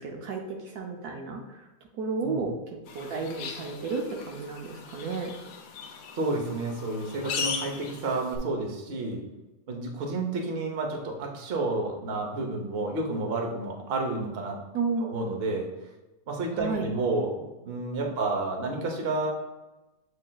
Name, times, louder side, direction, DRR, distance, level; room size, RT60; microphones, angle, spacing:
voice 1, 0.0-1.7 1.9-5.3 14.7-15.1 16.5-16.9, right 4 dB, 70° right, 1 dB, 1.0 m, -32 dB
sound 1, 2.9-8.4, left 5 dB, 75° left, 1.2 m, -38 dB
voice 2, 6.2-9.2 9.7-14.6 15.0-15.7 16.3-19.3, right 2 dB, 50° right, 1 dB, 0.7 m, -30 dB
7.3 x 3.2 x 2.2 m, 1.1 s
omnidirectional pair, 1.9 m